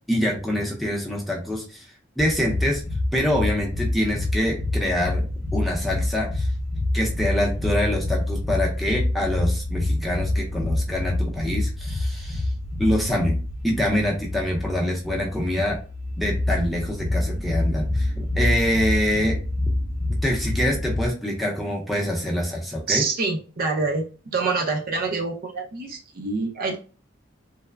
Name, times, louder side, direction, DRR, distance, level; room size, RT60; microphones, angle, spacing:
voice 1, 0.1-1.9 2.2-2.8 3.1-5.2 5.5-6.5 6.9-12.4 12.8-15.8 16.2-19.4 20.2-23.0, equal, ahead, -2 dB, 0.5 m, -25 dB
sound 1, 2.2-21.1, left 1 dB, 45° left, 0.7 m, -27 dB
voice 2, 22.9-24.0 24.3-26.8, right 4 dB, 50° right, 1 dB, 0.5 m, -26 dB
3.2 x 2.0 x 2.2 m, 0.36 s
head